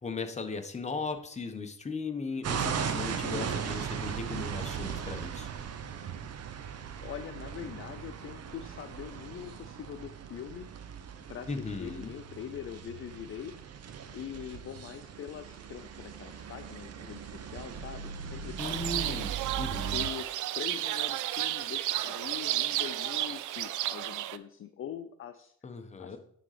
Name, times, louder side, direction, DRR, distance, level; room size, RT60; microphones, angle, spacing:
voice 1, 0.0-5.5 11.5-12.1 18.6-20.0 25.6-26.2, left 4 dB, 20° left, 5 dB, 1.1 m, -37 dB
sound 1, 2.4-20.1, right 7 dB, 55° right, 0.9 m, -38 dB
voice 2, 3.2-3.6 7.0-10.7 11.3-13.6 13.8-19.2 19.9-25.5 26.0-26.2, left 9 dB, 45° left, 9 dB, 0.5 m, -43 dB
sound 2, 18.6-24.4, right 14 dB, 80° right, 0.5 m, -32 dB
9.9 x 3.9 x 5.0 m, 0.67 s
cardioid pair, 90°, 30 cm